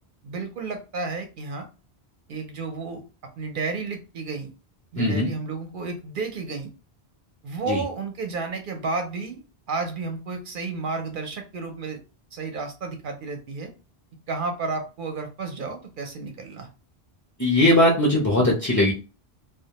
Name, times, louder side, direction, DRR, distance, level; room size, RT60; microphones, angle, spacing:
voice 1, 0.2-1.7 2.3-3.0 3.4-4.5 4.9-6.7 7.4-9.4 9.7-12.0 12.3-13.7 14.3-16.7, right 4 dB, 60° right, 4 dB, 0.6 m, -32 dB
voice 2, 5.0-5.3 7.7-7.8 17.4-18.9, left 1 dB, 30° left, -3 dB, 0.3 m, -19 dB
2.2 x 2.1 x 2.8 m, 0.32 s
omnidirectional pair, 1.1 m